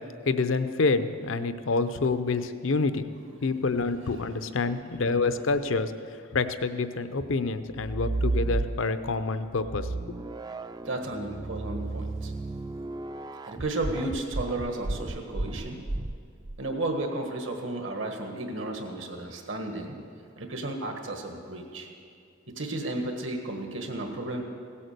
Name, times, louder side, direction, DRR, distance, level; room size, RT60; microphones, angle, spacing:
voice 1, 0.3-3.1 3.4-5.9 6.3-9.9, left 3 dB, 75° left, 11 dB, 0.6 m, -27 dB
sound 1, 7.7-9.1 9.6-16.6, right 2 dB, 20° right, 0.3 m, -33 dB
voice 2, 10.8-12.3 13.5-15.8 16.6-20.0 20.4-21.9 22.5-24.4, right 2 dB, 75° right, 3 dB, 1.6 m, -33 dB
16.5 x 8.6 x 6.7 m, 2.3 s
head